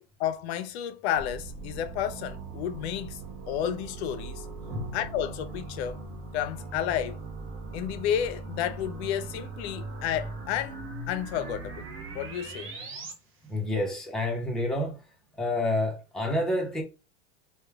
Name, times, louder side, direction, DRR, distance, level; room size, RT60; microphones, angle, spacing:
voice 1, 0.2-3.2 3.5-4.4 4.9-6.0 6.3-7.2 7.7-10.8 11.1-11.8 12.1-12.7, left 10 dB, 70° left, 0.5 m, -31 dB
sound 1, 1.2-13.1, right 3 dB, 35° right, 0.8 m, -40 dB
voice 2, 13.4-16.8, left 1 dB, ahead, 0.6 m, -29 dB
2.9 x 2.2 x 2.3 m
hypercardioid pair, 110°, 34 cm